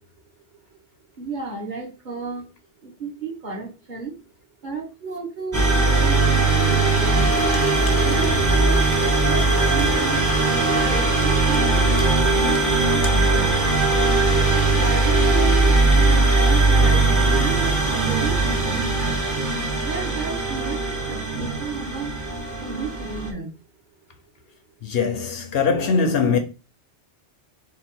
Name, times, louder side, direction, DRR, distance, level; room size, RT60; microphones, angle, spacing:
voice 1, 1.2-2.4 2.8-4.1 4.6-7.3 8.0-8.3 8.5-8.8 9.3-11.8 12.2-13.6 14.7-19.1 19.8-20.8 21.1-22.1 22.6-23.5, right 4 dB, 45° right, 1.3 m, -32 dB
sound 1, 5.5-23.3, right 3 dB, 20° right, 0.6 m, -19 dB
sound 2, 7.2-13.8, left 3 dB, 35° left, 0.5 m, -38 dB
voice 2, 24.8-26.4, left 5 dB, 65° left, 0.8 m, -22 dB
3.7 x 2.4 x 4.2 m
omnidirectional pair, 1.2 m